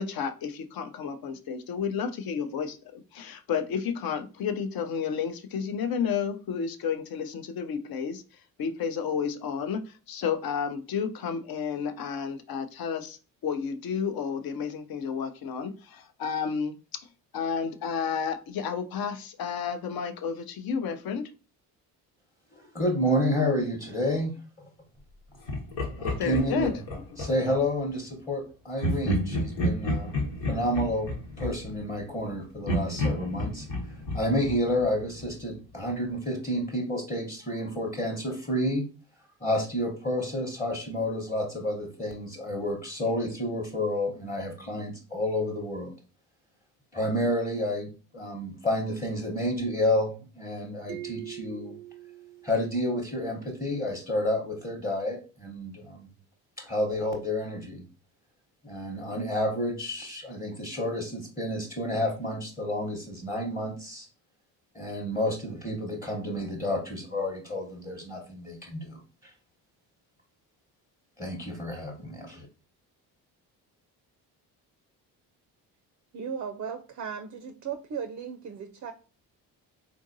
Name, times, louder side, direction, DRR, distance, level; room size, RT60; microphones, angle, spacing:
voice 1, 0.0-8.2 8.6-16.7 17.3-21.3 26.2-26.7, left 6 dB, 55° left, 9 dB, 0.6 m, -31 dB
voice 2, 22.5-24.3 26.0-26.7 27.2-30.1 30.5-31.1 31.4-33.7 34.1-38.8 39.4-45.9 46.9-51.8 52.4-56.1 56.6-57.8 58.6-64.1 64.7-69.3 71.2-72.5, left 1 dB, 20° left, -1 dB, 0.9 m, -30 dB
Laughter, 25.5-27.6 28.8-32.3 32.7-35.4, equal, 85° left, 1.2 m, -31 dB
sound 1, 50.9-53.4, right 14 dB, 85° right, 0.5 m, -43 dB
voice 3, 76.1-78.9, right 6 dB, 40° right, 7 dB, 0.4 m, -36 dB
3.8 x 2.6 x 2.6 m, 0.35 s
supercardioid pair, 70°, 43 cm